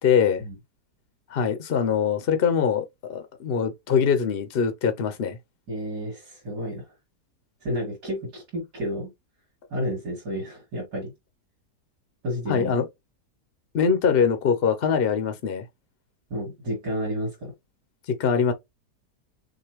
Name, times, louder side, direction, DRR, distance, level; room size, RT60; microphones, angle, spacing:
voice 1, 0.0-0.4 1.3-5.4 12.5-12.8 13.7-15.6 18.1-18.5, left 6 dB, 55° left, 0.7 m, -23 dB
voice 2, 5.7-6.9 7.6-9.1 9.7-11.1 12.2-12.7 16.3-17.5, equal, 80° right, 3.0 m, -31 dB
6.3 x 2.5 x 3.0 m
omnidirectional pair, 1.7 m